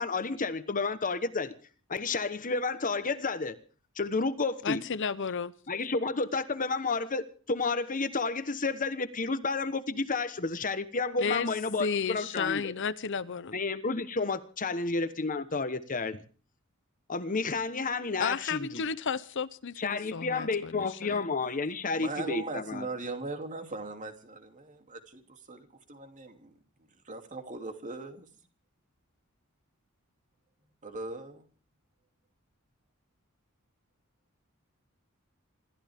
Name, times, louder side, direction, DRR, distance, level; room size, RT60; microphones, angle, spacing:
voice 1, 0.0-1.5 1.9-3.6 4.0-4.8 5.7-12.6 13.5-16.2 17.1-18.8 19.8-22.8, left 3 dB, 40° left, 1.2 m, -31 dB
voice 2, 4.6-5.5 11.2-11.5 11.8-13.6 18.2-21.2, left 6 dB, 60° left, 0.8 m, -33 dB
voice 3, 22.0-26.5 27.0-28.3 30.8-31.4, right 2 dB, 35° right, 2.9 m, -39 dB
27.0 x 14.0 x 3.6 m
head